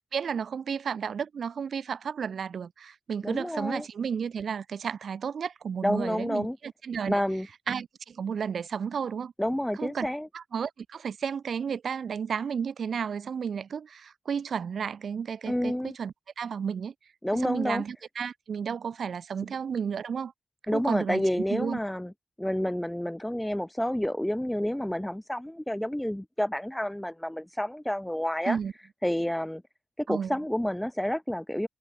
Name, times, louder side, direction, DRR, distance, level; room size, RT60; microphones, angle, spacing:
voice 1, 0.1-7.2 7.7-9.3 9.8-10.1 10.3-16.9 17.4-20.3 20.7-21.8 28.5-28.7 30.1-30.4, right 7 dB, 75° right, 5.2 m, -32 dB
voice 2, 3.2-3.8 5.8-6.6 7.1-7.5 9.4-10.3 15.5-15.9 17.2-17.8 20.7-22.1 22.4-28.6 29.0-29.6 30.0-31.7, left 1 dB, 5° left, 0.9 m, -29 dB
cardioid pair, 85°, 0 cm